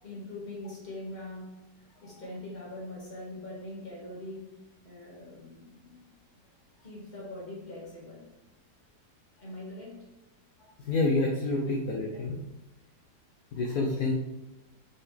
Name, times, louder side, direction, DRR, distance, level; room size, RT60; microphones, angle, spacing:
voice 1, 0.0-1.6 2.0-6.1 6.8-8.3 9.4-10.1, left 1 dB, 25° left, -5 dB, 1.9 m, -42 dB
voice 2, 10.9-12.4 13.5-14.1, left 2 dB, 65° left, -1 dB, 1.2 m, -28 dB
5.8 x 5.3 x 3.3 m, 1.0 s
omnidirectional pair, 1.9 m